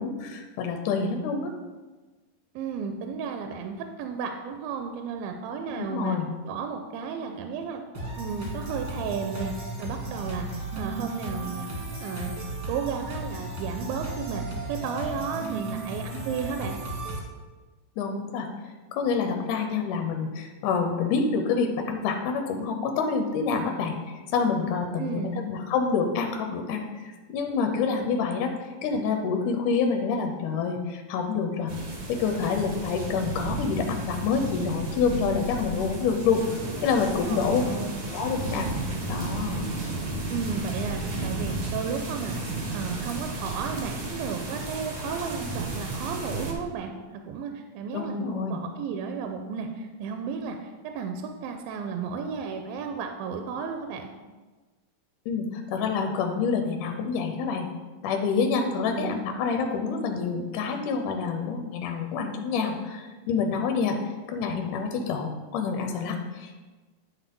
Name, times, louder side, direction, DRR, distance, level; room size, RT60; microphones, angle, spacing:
voice 1, 0.0-1.5 5.8-6.3 18.0-18.5 18.9-28.5 28.8-31.7 32.1-36.4 36.8-37.6 38.1-38.7 39.1-39.7 47.9-48.6 55.3-57.7 58.0-64.0 64.3-66.5, left 5 dB, 75° left, 4 dB, 2.0 m, -27 dB
voice 2, 2.6-6.2 6.5-7.8 8.2-9.5 9.8-11.7 12.0-12.4 12.7-14.4 14.7-16.8 25.0-25.4 37.2-38.0 40.3-42.4 42.7-54.1 58.6-59.2, right 6 dB, 80° right, 5 dB, 2.4 m, -33 dB
sound 1, 7.9-17.2, right 2 dB, 45° right, 1.5 m, -35 dB
sound 2, 31.7-46.5, right 2 dB, 60° right, 1.3 m, -33 dB
10.5 x 4.5 x 5.3 m, 1.3 s
omnidirectional pair, 4.2 m